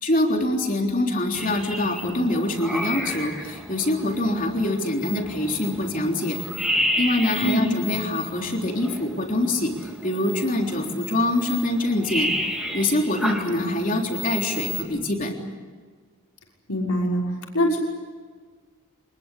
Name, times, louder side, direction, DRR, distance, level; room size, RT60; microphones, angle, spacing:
voice 1, 0.0-6.4 7.0-12.3 12.7-15.3, left 1 dB, 35° left, 2 dB, 3.6 m, -24 dB
sound 1, 1.3-14.8, equal, ahead, 3.2 m, -32 dB
voice 2, 16.7-17.2 17.5-17.8, equal, 80° left, -1 dB, 6.1 m, -22 dB
25.5 x 21.5 x 8.5 m, 1.5 s
head